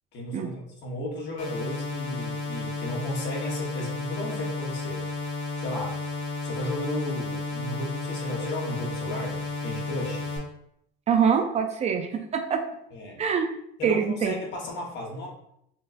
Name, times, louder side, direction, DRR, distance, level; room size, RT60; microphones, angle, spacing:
voice 1, 0.1-5.3 5.6-6.0 6.4-10.3 12.9-13.2 13.8-15.3, left 1 dB, 55° left, -1 dB, 1.2 m, -34 dB
sound 1, 1.4-10.4, left 3 dB, 70° left, 1.3 m, -33 dB
voice 2, 11.1-12.6 13.2-13.5 13.8-14.4, right 7 dB, 35° right, 6 dB, 0.4 m, -24 dB
5.6 x 2.2 x 2.5 m, 0.75 s
cardioid pair, 115°, 21 cm